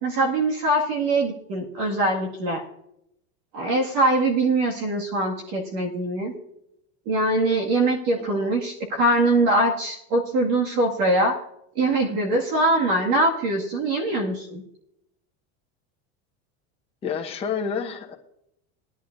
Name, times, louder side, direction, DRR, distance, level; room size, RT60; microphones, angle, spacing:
voice 1, 0.0-2.6 3.5-6.3 7.1-11.4 11.8-14.6, right 2 dB, 55° right, 1 dB, 2.1 m, -22 dB
voice 2, 8.2-8.5 17.0-18.1, left 6 dB, 20° left, 0 dB, 1.2 m, -29 dB
20.0 x 11.0 x 2.6 m, 0.78 s
cardioid pair, 175°, 31 cm